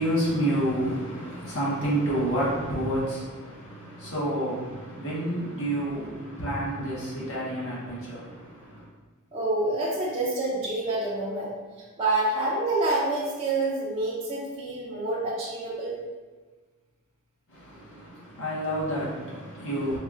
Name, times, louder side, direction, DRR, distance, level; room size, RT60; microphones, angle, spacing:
voice 1, 0.0-8.9 17.5-20.0, right 1 dB, 60° left, -7 dB, 1.0 m, -29 dB
voice 2, 9.3-11.5 12.0-16.0, right 2 dB, 25° right, -7 dB, 0.6 m, -27 dB
4.7 x 2.3 x 2.4 m, 1.3 s
head